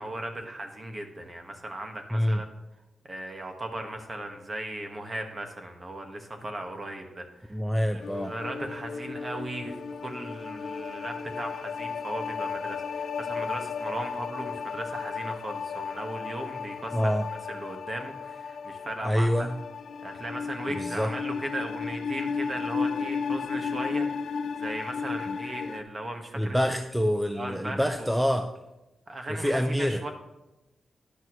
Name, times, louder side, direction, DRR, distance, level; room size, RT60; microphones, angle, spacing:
voice 1, 0.0-2.4 3.0-17.0 17.5-19.5 20.0-26.6 27.3-28.1 29.1-30.1, right 1 dB, 25° right, 4 dB, 1.6 m, -37 dB
voice 2, 7.5-8.3 16.9-17.2 19.0-19.5 20.7-21.1 25.3-25.4 26.3-28.5 29.3-30.0, equal, ahead, 6 dB, 0.6 m, -26 dB
sound 1, 8.0-25.8, left 5 dB, 80° left, 0.9 m, -34 dB
13.0 x 10.5 x 3.1 m, 0.96 s
wide cardioid pair, 140°, 0 cm